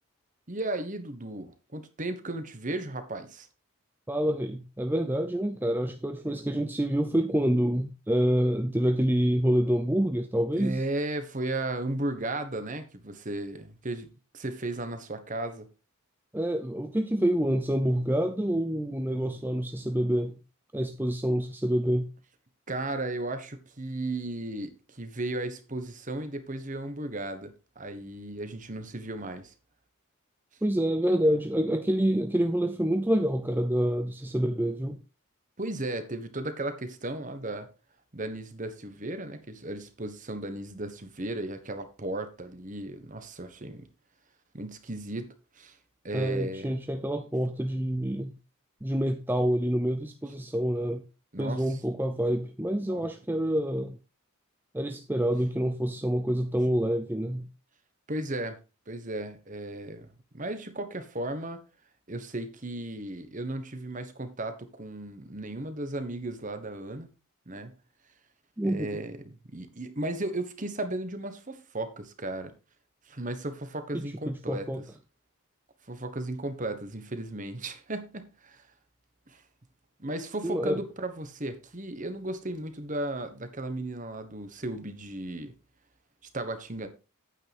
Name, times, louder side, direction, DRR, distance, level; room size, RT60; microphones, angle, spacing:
voice 1, 0.5-3.5 10.5-14.1 14.3-15.7 22.7-29.5 35.6-37.7 38.1-43.9 44.5-45.3 45.6-45.8 46.0-46.7 51.3-51.6 52.9-53.1 58.1-58.6 58.9-60.1 60.3-61.6 62.1-67.1 67.5-67.7 68.6-69.2 69.5-72.5 73.1-74.7 75.9-78.6 79.3-79.4 80.0-85.5 86.3-86.9, right 2 dB, 35° right, 1.4 m, -35 dB
voice 2, 4.1-10.8 16.3-20.3 20.7-22.1 30.6-35.0 46.1-48.3 48.8-51.0 51.4-54.0 54.7-57.4 68.6-68.9 73.9-74.8 80.4-80.8, equal, 10° right, 0.5 m, -27 dB
9.0 x 8.9 x 3.5 m
head